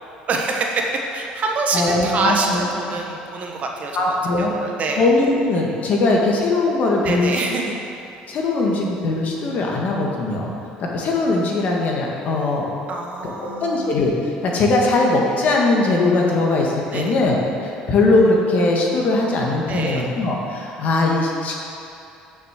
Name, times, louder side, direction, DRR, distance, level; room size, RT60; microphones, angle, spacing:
voice 1, 0.3-4.1 4.4-5.0 7.0-7.7 12.9-13.9 16.9-17.1 19.7-20.1, right 3 dB, 50° right, 1 dB, 1.3 m, -25 dB
voice 2, 1.7-2.6 3.9-4.5 5.0-7.4 8.3-10.5 10.8-12.7 13.2-13.3 13.6-14.1 14.4-17.4 17.6-21.6, left 2 dB, 55° left, -1 dB, 1.7 m, -20 dB
6.6 x 6.5 x 6.6 m, 2.7 s
supercardioid pair, 80°, 3 cm